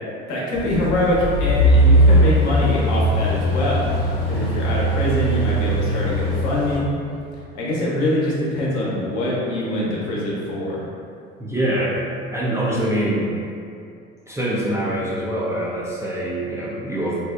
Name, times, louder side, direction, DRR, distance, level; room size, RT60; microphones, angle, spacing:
voice 1, 0.3-3.9 4.3-6.9 7.5-10.8, left 1 dB, 60° left, -6 dB, 0.8 m, -23 dB
sound 1, 0.5-6.8, equal, 85° right, 1.2 m, -19 dB
voice 2, 11.4-11.9 12.3-13.3 14.3-17.2, right 1 dB, 10° right, -8 dB, 0.3 m, -24 dB
2.7 x 2.0 x 2.3 m, 2.5 s
figure-of-eight pair, 65°, 32 cm